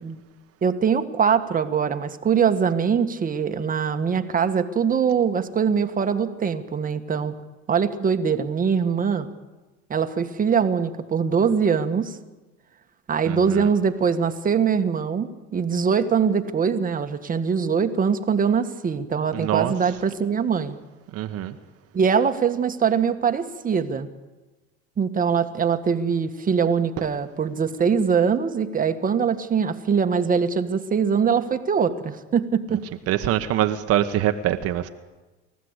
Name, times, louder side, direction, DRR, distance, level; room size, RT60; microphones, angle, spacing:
voice 1, 0.6-7.3 7.7-9.3 9.9-12.2 13.1-20.8 21.9-24.1 25.0-32.8, right 6 dB, 30° right, 1.7 m, -22 dB
voice 2, 13.2-13.7 19.3-19.9 21.1-21.5 32.7-32.8 33.1-34.9, right 12 dB, 55° right, 1.4 m, -24 dB
29.5 x 15.0 x 8.2 m
supercardioid pair, 105°, 29 cm